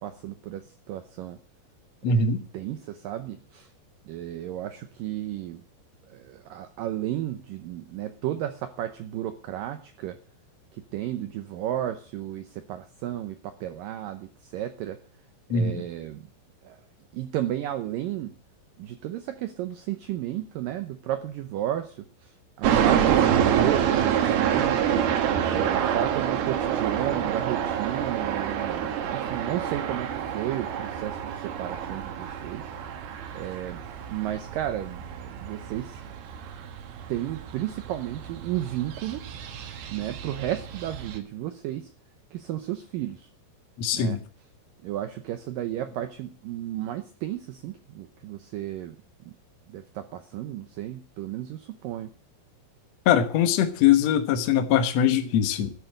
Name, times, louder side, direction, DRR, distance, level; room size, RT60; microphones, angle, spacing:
voice 1, 0.0-1.4 2.1-3.7 4.1-5.6 6.1-10.2 10.7-15.0 15.5-16.3 16.6-16.8 17.1-18.3 18.8-25.1 25.5-32.7 33.0-33.8 34.1-36.0 37.1-39.3 39.9-41.9 42.3-43.3 43.9-44.2 44.8-49.0 49.3-49.4 49.7-52.1, right 12 dB, 90° right, 1.9 m, -33 dB
voice 2, 2.0-2.4 15.5-15.7 43.8-44.2 53.0-55.7, left 7 dB, 75° left, 1.5 m, -22 dB
sound 1, 22.6-41.2, right 9 dB, 65° right, 3.0 m, -27 dB
12.5 x 7.2 x 9.0 m
omnidirectional pair, 5.0 m